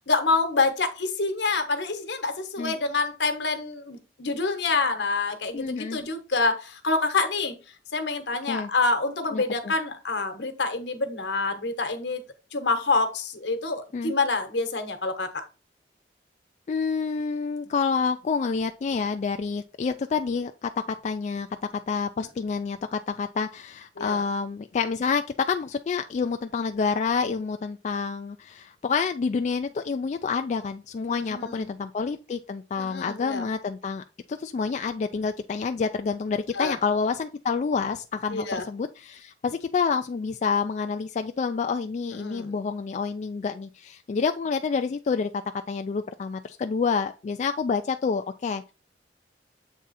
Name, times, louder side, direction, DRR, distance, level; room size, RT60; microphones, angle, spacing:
voice 1, 0.1-7.6 7.9-12.2 12.5-15.4 24.0-24.2 31.1-31.7 32.8-33.5 36.5-36.7 38.3-38.6 42.1-42.6, left 3 dB, 80° left, 1.2 m, -27 dB
voice 2, 5.5-6.0 8.5-8.7 9.3-9.7 13.9-14.1 16.7-21.5 21.7-45.3 45.7-48.7, left 5 dB, 40° left, 0.3 m, -28 dB
7.3 x 3.6 x 4.1 m
head